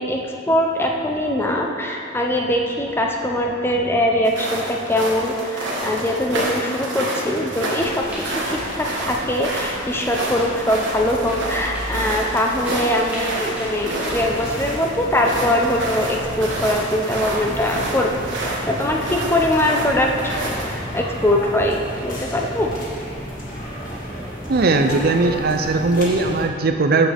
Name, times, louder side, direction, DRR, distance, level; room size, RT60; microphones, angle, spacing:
voice 1, 0.0-20.4 20.7-22.7, left 1 dB, 10° left, 0 dB, 0.7 m, -22 dB
sound 1, 4.2-20.7, right 1 dB, 65° right, 1.5 m, -29 dB
sound 2, 7.8-14.5, equal, 10° right, 1.7 m, -34 dB
sound 3, 14.1-26.5, equal, 45° left, 1.7 m, -32 dB
voice 2, 24.5-27.1, right 3 dB, 50° right, 5 dB, 0.5 m, -18 dB
12.0 x 6.2 x 3.5 m, 2.7 s
head